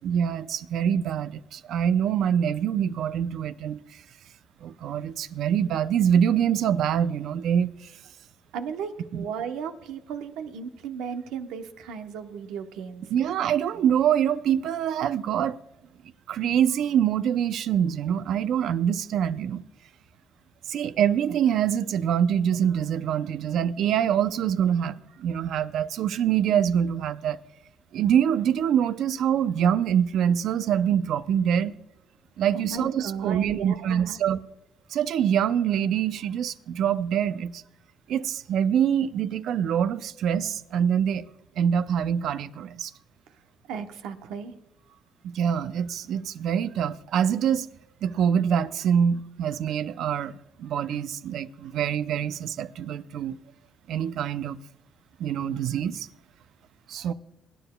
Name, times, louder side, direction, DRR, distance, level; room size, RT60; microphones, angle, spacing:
voice 1, 0.0-3.8 4.6-7.7 9.1-9.2 13.1-15.6 16.3-19.6 20.7-27.4 27.9-31.7 32.4-34.4 34.9-37.6 38.1-41.3 41.6-42.9 45.2-47.7 48.0-50.3 50.6-53.4 53.9-54.6 55.2-56.1 56.9-57.1, right 9 dB, 75° right, 0.5 m, -25 dB
voice 2, 8.5-13.0 32.5-34.2 43.7-44.5, right 6 dB, 90° right, 1.0 m, -35 dB
23.5 x 10.0 x 2.3 m
cardioid pair, 85°, 0 cm